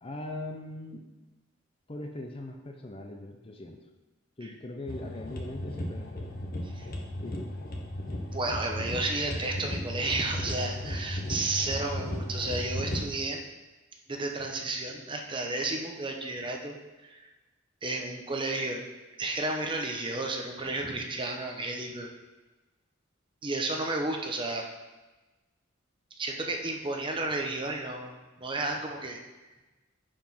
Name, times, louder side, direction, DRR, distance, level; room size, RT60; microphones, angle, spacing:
voice 1, 0.0-1.0 1.9-3.9 4.4-6.5 7.2-7.5, left 1 dB, 30° left, 4 dB, 0.6 m, -40 dB
sound 1, 4.9-13.0, left 1 dB, 45° left, 1.2 m, -35 dB
voice 2, 8.3-13.4 14.1-16.8 17.0-17.3 17.8-18.8 19.2-22.1 23.4-24.6 26.1-29.2, right 2 dB, 25° right, 2 dB, 0.9 m, -32 dB
7.4 x 4.9 x 5.6 m, 1.1 s
head